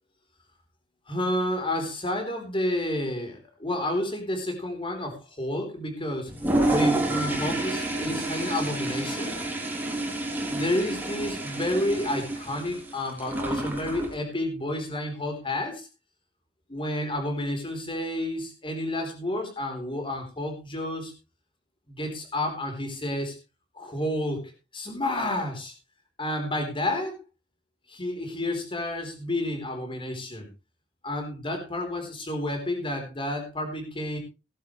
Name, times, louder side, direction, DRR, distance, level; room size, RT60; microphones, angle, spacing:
voice 1, 1.1-6.3 6.7-9.4 10.5-15.9 16.7-21.1 21.9-23.4 23.8-24.4 24.7-25.7 26.2-27.2 27.9-30.5 31.0-34.2, left 1 dB, 30° left, 4 dB, 3.9 m, -30 dB
Toilet flush, 6.3-14.1, right 1 dB, 10° right, 3.1 m, -29 dB
17.5 x 11.0 x 3.2 m, 0.28 s
head